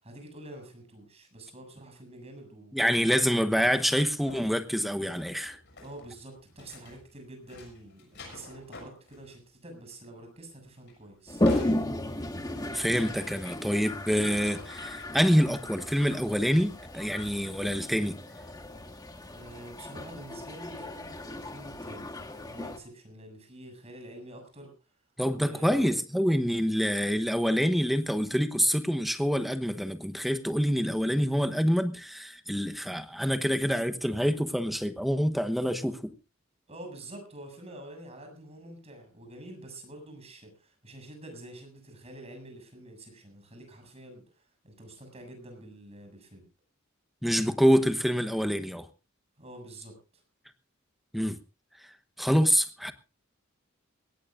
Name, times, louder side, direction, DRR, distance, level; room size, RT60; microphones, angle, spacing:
voice 1, 0.0-2.8 5.8-11.4 19.3-22.1 22.4-24.7 25.3-26.0 36.7-46.4 49.4-49.9, right 1 dB, 30° right, 7.3 m, -47 dB
voice 2, 2.7-5.6 12.7-18.2 25.2-36.1 47.2-48.9 51.1-51.4 52.2-52.9, equal, ahead, 1.1 m, -26 dB
sound 1, 4.2-7.2 7.4-9.3 9.6-9.7 10.7-15.1 16.2-16.9 17.2-17.8, left 2 dB, 55° left, 7.0 m, -48 dB
Toilet flush, 11.3-22.8, left 1 dB, 20° left, 1.6 m, -34 dB
21.5 x 18.0 x 2.6 m
head